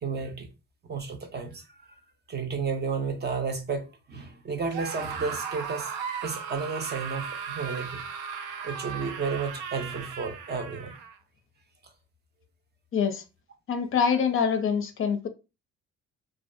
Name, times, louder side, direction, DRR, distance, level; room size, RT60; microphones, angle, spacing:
voice 1, 0.0-0.5 0.9-1.6 2.3-5.9 6.2-8.0 8.6-10.9, right 5 dB, 35° right, 0.5 m, -32 dB
Screaming, 4.7-11.2, right 6 dB, 85° right, 0.5 m, -36 dB
voice 2, 12.9-13.2 13.7-15.3, left 6 dB, 45° left, 0.5 m, -25 dB
2.6 x 2.2 x 2.4 m
cardioid pair, 115°, 30 cm